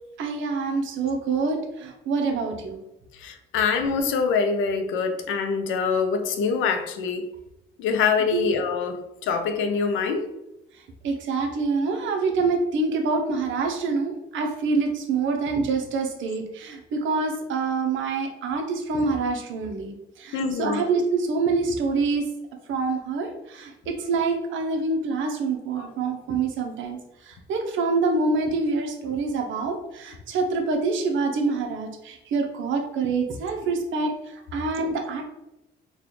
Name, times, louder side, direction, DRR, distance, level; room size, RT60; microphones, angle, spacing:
voice 1, 0.2-2.8 8.3-8.5 11.0-22.3 22.7-27.0 27.3-34.1 34.5-35.2, right 4 dB, 75° right, 0.7 m, -26 dB
voice 2, 3.2-7.3 7.8-10.3 20.3-20.8 25.8-25.9, left 5 dB, 85° left, 0.5 m, -25 dB
4.0 x 2.3 x 3.1 m
cardioid pair, 90°, 20 cm